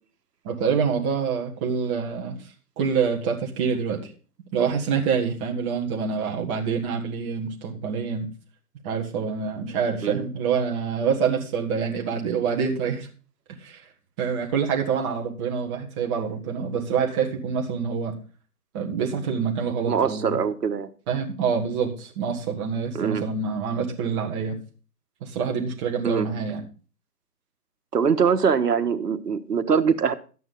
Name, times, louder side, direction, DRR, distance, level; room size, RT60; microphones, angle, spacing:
voice 1, 0.4-2.4 2.8-4.0 4.5-8.3 8.8-13.1 13.6-13.8 14.2-18.1 18.7-20.4 21.1-24.6 25.2-26.6, right 6 dB, 20° right, 0 dB, 1.6 m, -26 dB
voice 2, 19.9-20.9 22.9-23.2 26.0-26.3 27.9-30.1, right 6 dB, 80° right, 10 dB, 1.4 m, -23 dB
12.5 x 9.2 x 3.9 m, 0.36 s
hypercardioid pair, 155°, 48 cm